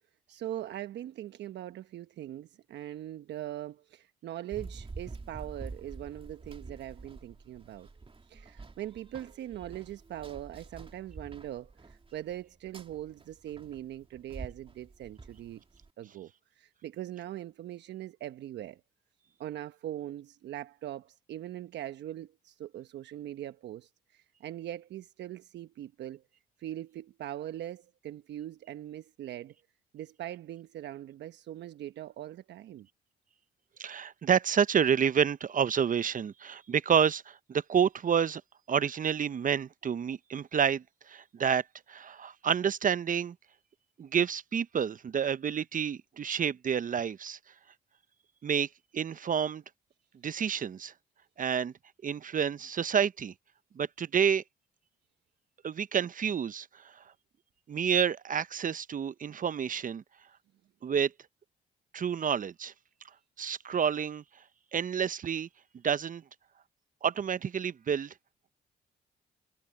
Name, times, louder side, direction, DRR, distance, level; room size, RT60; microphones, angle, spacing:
voice 1, 0.3-7.9 8.3-15.6 16.0-18.8 19.4-26.2 26.6-29.5 29.9-32.9, right 12 dB, 70° right, 1.1 m, -41 dB
Run, 4.5-15.9, right 3 dB, 30° right, 2.6 m, -47 dB
voice 2, 33.8-38.4 38.7-43.4 44.0-47.4 48.4-48.7 48.9-49.6 50.2-50.9 51.4-51.7 52.0-53.3 53.8-54.4 55.6-57.0 57.7-60.0 60.8-61.1 61.9-62.7 63.4-64.2 64.7-65.5 65.8-66.2 67.0-68.1, right 7 dB, 45° right, 0.8 m, -29 dB
hypercardioid pair, 50°, 19 cm